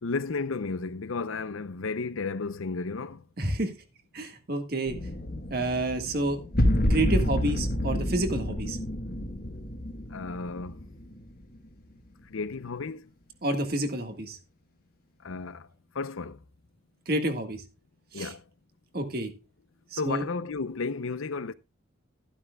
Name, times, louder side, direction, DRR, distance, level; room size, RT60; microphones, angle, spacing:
voice 1, 0.0-3.2 10.1-10.8 12.3-13.1 15.2-15.7 15.9-16.4 18.1-18.4 20.0-21.5, left 4 dB, 90° left, 0.7 m, -33 dB
voice 2, 3.4-3.7 4.1-5.0 5.5-6.4 6.9-8.8 13.4-14.4 17.1-17.6 18.1-18.3 18.9-19.3 19.9-20.2, right 1 dB, 50° right, 1.8 m, -29 dB
sound 1, 4.8-11.7, left 1 dB, 45° left, 1.4 m, -29 dB
12.5 x 11.5 x 2.3 m
head